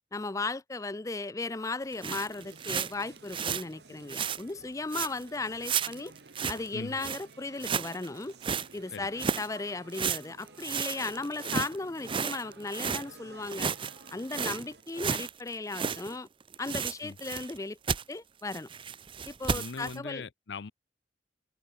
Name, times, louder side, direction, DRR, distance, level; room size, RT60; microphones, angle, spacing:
voice 1, 0.1-6.1 6.5-8.3 8.7-13.7 14.1-16.3 16.6-18.7 19.3-20.2, left 3 dB, 20° left, 0.5 m, -36 dB
sound 1, 1.9-3.6 4.1-4.4 4.9-5.2 5.6-6.7 7.0-7.2 7.6-8.7 9.2-9.5 9.9-13.0 13.4-16.2 16.4-17.6 17.9-18.0 18.5-20.0, right 6 dB, 30° right, 0.6 m, -33 dB
sound 2, 2.1-14.8, right 3 dB, 70° right, 2.6 m, -54 dB
voice 2, 8.9-9.2 17.0-17.2 19.5-20.7, left 4 dB, 85° left, 0.6 m, -41 dB
sound 3, 8.9-14.6, right 1 dB, 10° right, 4.3 m, -61 dB
open air
head